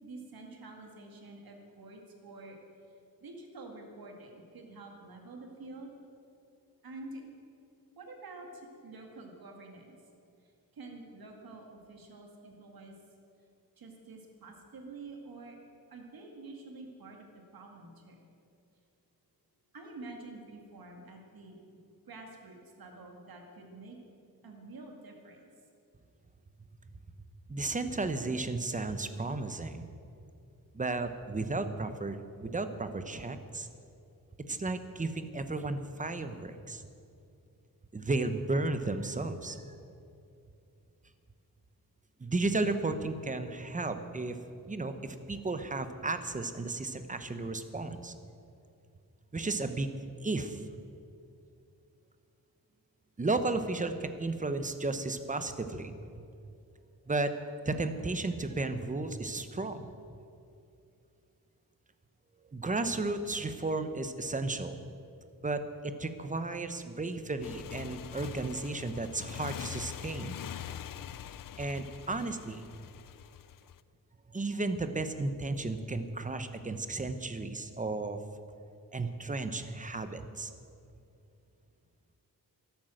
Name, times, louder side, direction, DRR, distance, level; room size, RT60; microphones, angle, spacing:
voice 1, 0.0-2.6 2.9-3.0 3.2-6.0 6.8-7.2 8.0-10.0 10.4-12.9 13.8-15.6 15.9-18.2 19.7-21.6 22.1-24.0 24.4-25.5, right 2 dB, 75° right, 2 dB, 2.2 m, -48 dB
voice 2, 27.5-29.9 30.7-33.7 34.5-36.8 37.9-39.6 42.2-44.4 44.7-48.1 49.3-49.9 50.2-50.6 53.2-55.9 57.1-57.4 57.6-59.9 62.5-64.8 65.4-70.4 71.6-72.7 74.3-78.2 78.9-80.5, right 3 dB, 20° right, 9 dB, 0.8 m, -34 dB
Motorcycle, 67.4-73.8, left 10 dB, 65° left, 0.5 m, -43 dB
13.0 x 11.5 x 7.7 m, 2.6 s
wide cardioid pair, 135°, 36 cm